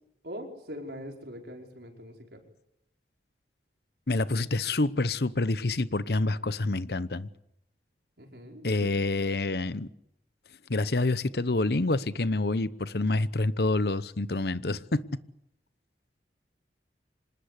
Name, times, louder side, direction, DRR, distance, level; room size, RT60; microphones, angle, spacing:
voice 1, 0.2-2.4 8.2-8.9, equal, 65° right, 5.2 m, -42 dB
voice 2, 4.1-7.3 8.6-9.9 10.7-15.0, left 2 dB, 65° left, 0.9 m, -27 dB
26.5 x 19.5 x 8.3 m
head